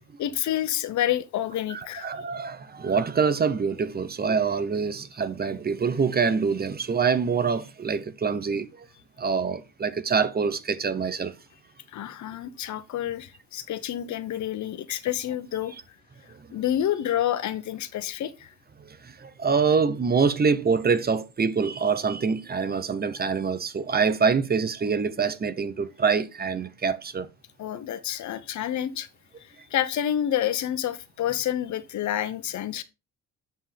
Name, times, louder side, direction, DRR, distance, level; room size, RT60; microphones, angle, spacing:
voice 1, 0.2-2.1 11.9-15.7 16.5-18.5 27.6-29.1 29.7-32.8, left 11 dB, 70° left, 0.9 m, -28 dB
voice 2, 1.7-8.9 9.2-11.3 19.0-27.3, right 5 dB, 30° right, 0.8 m, -25 dB
7.7 x 5.4 x 3.4 m
cardioid pair, 90°, 30 cm